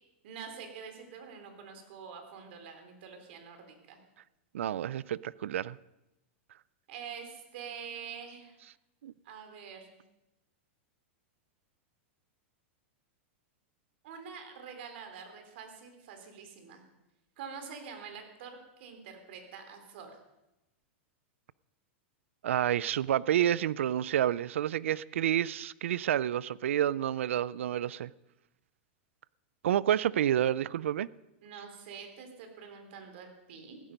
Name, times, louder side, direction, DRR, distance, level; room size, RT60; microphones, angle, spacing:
voice 1, 0.2-4.0 6.9-8.6 9.2-10.0 14.0-16.8 17.4-20.1 31.4-33.8, right 6 dB, 65° right, 3.6 m, -46 dB
voice 2, 4.5-5.8 9.0-9.1 22.4-28.1 29.6-31.1, right 11 dB, 90° right, 0.4 m, -29 dB
15.5 x 13.0 x 5.3 m
supercardioid pair, 145°, 7 cm